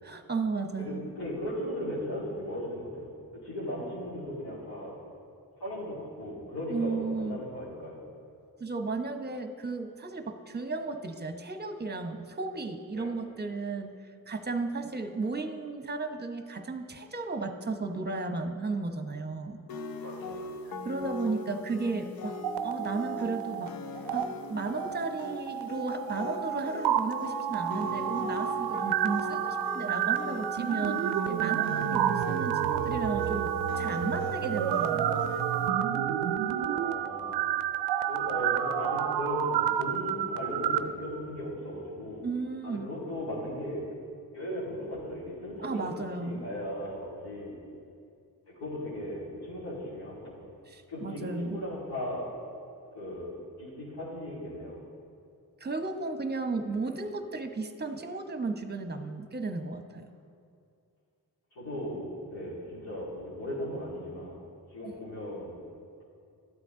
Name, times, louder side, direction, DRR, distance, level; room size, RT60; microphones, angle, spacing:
voice 1, 0.0-1.0 6.7-7.4 8.6-14.0 14.3-19.6 20.8-23.8 24.1-35.4 42.2-42.9 45.6-46.5 50.7-51.6 55.6-60.1 64.9-65.0, right 3 dB, 25° right, 7 dB, 0.9 m, -34 dB
voice 2, 0.8-3.1 3.4-5.0 5.6-8.0 12.9-13.1 20.0-20.4 36.6-37.4 38.0-42.3 42.6-43.8 44.3-45.9 46.2-47.6 48.5-50.3 50.9-52.3 52.9-54.8 61.5-64.4 64.7-65.6, equal, 80° left, -9 dB, 2.7 m, -37 dB
sound 1, 19.7-35.7, left 3 dB, 65° left, 0.7 m, -41 dB
sound 2, 22.3-23.7 24.0-24.2 24.8-40.8, right 10 dB, 85° right, 0.5 m, -30 dB
12.5 x 8.3 x 3.8 m, 2.4 s
supercardioid pair, 45°, 38 cm